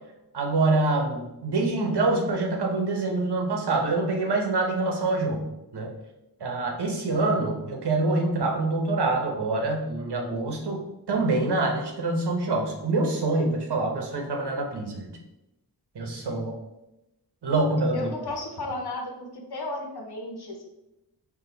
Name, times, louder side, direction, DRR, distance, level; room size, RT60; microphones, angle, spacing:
voice 1, 0.3-5.9 6.4-10.8 11.1-15.1 15.9-16.6 17.4-18.1, right 2 dB, 75° right, 1 dB, 1.0 m, -25 dB
voice 2, 17.9-20.6, left 2 dB, 70° left, 2 dB, 1.1 m, -34 dB
4.8 x 2.4 x 3.9 m, 0.93 s
cardioid pair, 50°, 40 cm